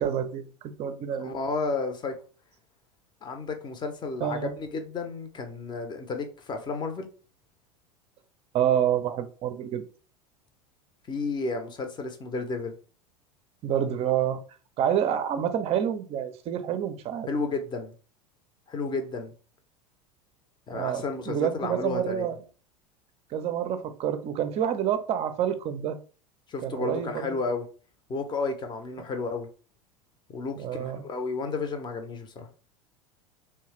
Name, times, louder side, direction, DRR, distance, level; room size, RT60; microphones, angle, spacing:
voice 1, 0.0-1.3 4.2-4.5 8.5-9.8 13.6-14.4 14.8-17.3 20.7-22.4 23.3-26.0 26.6-27.3 30.6-31.0, right 9 dB, 35° right, 0.5 m, -28 dB
voice 2, 1.2-2.2 3.2-7.1 11.1-12.8 17.3-17.9 18.7-19.3 20.7-22.3 26.5-27.7 28.1-29.5 30.3-32.5, left 3 dB, 25° left, 0.6 m, -32 dB
3.0 x 2.2 x 3.0 m
figure-of-eight pair, 80°, 19 cm